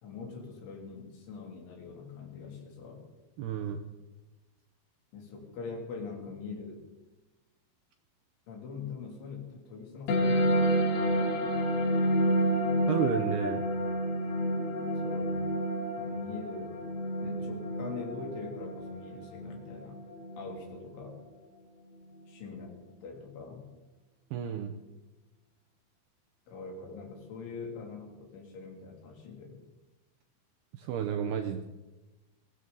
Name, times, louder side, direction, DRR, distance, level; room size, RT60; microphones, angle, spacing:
voice 1, 0.0-3.0 5.1-6.8 8.5-11.4 15.0-15.4 16.0-16.7 17.2-20.0 20.4-21.2 22.3-23.7 26.5-29.6, left 4 dB, 75° left, 1 dB, 5.4 m, -43 dB
voice 2, 3.4-3.8 12.9-13.6 24.3-24.7 30.8-31.6, right 8 dB, 80° right, 6 dB, 2.4 m, -31 dB
sound 1, 10.1-21.1, equal, 60° left, 3.4 m, -30 dB
21.5 x 16.5 x 4.1 m, 1.1 s
omnidirectional pair, 5.5 m